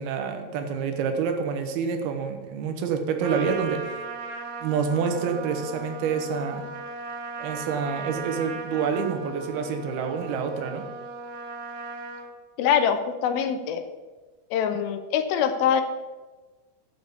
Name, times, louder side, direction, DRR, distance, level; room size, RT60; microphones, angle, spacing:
voice 1, 0.0-3.9 4.6-6.6 7.4-10.8, right 6 dB, 85° right, 6 dB, 3.1 m, -27 dB
Trumpet, 3.2-12.3, right 3 dB, 65° right, 1.4 m, -37 dB
voice 2, 12.6-13.8 14.5-15.8, left 8 dB, 85° left, 9 dB, 2.6 m, -24 dB
11.0 x 5.7 x 8.4 m, 1.3 s
omnidirectional pair, 4.3 m